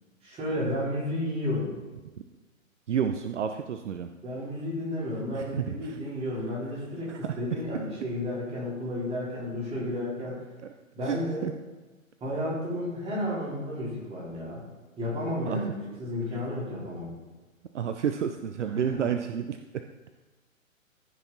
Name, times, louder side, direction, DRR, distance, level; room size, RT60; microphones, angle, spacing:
voice 1, 0.2-1.7 4.2-10.4 10.9-11.5 12.2-14.6 15.0-17.1 18.7-19.1, left 1 dB, 15° right, -6 dB, 3.9 m, -32 dB
voice 2, 2.9-4.1 5.3-6.0 7.1-7.3 11.1-11.5 15.5-15.6 17.7-19.6, right 8 dB, 60° right, 7 dB, 0.7 m, -30 dB
15.0 x 6.1 x 4.2 m, 1.2 s
figure-of-eight pair, 130°, 41 cm